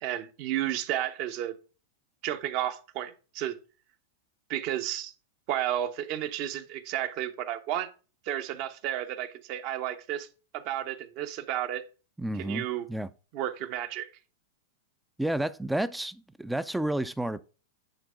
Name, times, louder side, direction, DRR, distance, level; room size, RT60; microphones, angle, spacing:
voice 1, 0.0-1.6 2.2-3.6 4.5-5.1 5.5-7.9 8.2-10.3 10.5-11.8 12.4-12.9 13.3-14.1, right 12 dB, 50° right, 0.9 m, -32 dB
voice 2, 12.2-13.1 15.2-17.4, right 1 dB, 5° right, 0.4 m, -31 dB
9.1 x 3.6 x 4.8 m
hypercardioid pair, 120°, 0 cm